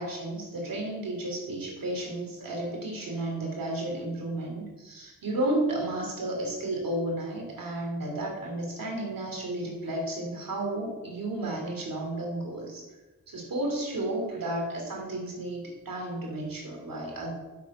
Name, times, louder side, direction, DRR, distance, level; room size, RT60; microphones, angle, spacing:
voice 1, 0.0-12.8 13.3-17.3, right 1 dB, 85° right, 0 dB, 3.1 m, -32 dB
8.6 x 7.7 x 5.4 m, 1.1 s
cardioid pair, 60°, 33 cm